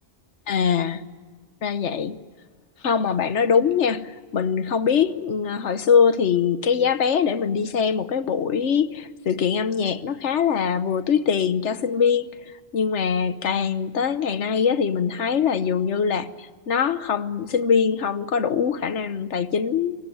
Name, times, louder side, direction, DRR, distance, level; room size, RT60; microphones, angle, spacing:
voice 1, 0.5-1.0 1.6-2.2 2.8-20.0, left 6 dB, 85° left, 1.3 m, -23 dB
26.5 x 18.5 x 9.6 m
omnidirectional pair, 1.2 m